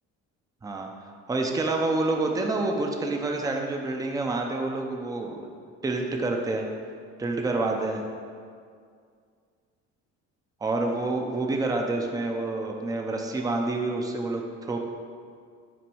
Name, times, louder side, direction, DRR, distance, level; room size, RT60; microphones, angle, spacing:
voice 1, 1.3-5.4 5.8-6.6 7.2-8.0 10.6-14.4 14.7-14.8, right 2 dB, 10° right, 2 dB, 0.6 m, -28 dB
6.1 x 4.0 x 6.2 m, 2.2 s
cardioid pair, 120°, 29 cm